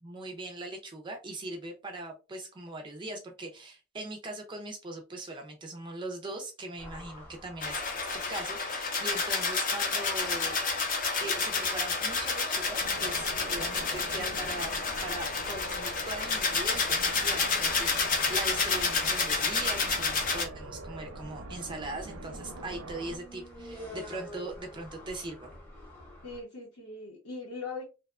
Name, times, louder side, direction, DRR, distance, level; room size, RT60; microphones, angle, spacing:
voice 1, 0.0-7.8 8.1-10.6 11.2-14.7 15.0-25.5, right 2 dB, 20° right, 3 dB, 0.3 m, -40 dB
sound 1, 6.8-26.4, left 1 dB, 10° left, 0.7 m, -50 dB
sound 2, 7.6-20.4, left 4 dB, 40° left, 0.5 m, -30 dB
sound 3, 12.8-23.2, right 2 dB, 85° right, 0.5 m, -43 dB
voice 2, 26.2-27.8, left 3 dB, 75° left, -3 dB, 0.8 m, -40 dB
2.6 x 2.1 x 2.3 m, 0.30 s
head